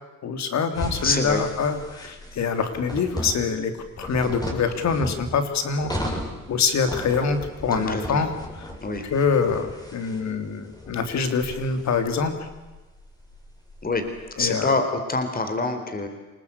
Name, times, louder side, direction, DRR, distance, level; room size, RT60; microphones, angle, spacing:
voice 1, 0.2-3.7 4.0-6.2 6.5-8.3 9.0-12.5 14.4-14.7, left 5 dB, 65° left, 8 dB, 3.4 m, -25 dB
sound 1, 0.7-14.5, left 1 dB, 15° left, 6.6 m, -36 dB
voice 2, 1.0-1.4 7.7-8.2 8.8-9.1 13.8-14.0 14.4-16.1, left 3 dB, 30° left, 7 dB, 4.1 m, -25 dB
26.5 x 20.5 x 8.5 m, 1.2 s
cardioid pair, 90°, 30 cm